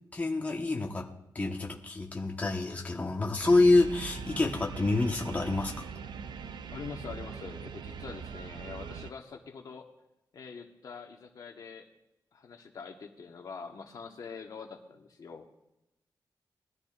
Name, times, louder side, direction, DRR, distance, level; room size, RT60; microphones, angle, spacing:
voice 1, 0.1-5.8, left 2 dB, 20° left, 0 dB, 1.2 m, -27 dB
sound 1, 3.4-9.1, right 6 dB, 80° right, 0.6 m, -41 dB
voice 2, 6.7-9.9 10.3-11.9 12.3-15.5, left 5 dB, 55° left, 3 dB, 1.3 m, -44 dB
21.0 x 13.5 x 2.5 m, 0.90 s
wide cardioid pair, 165°, 7 cm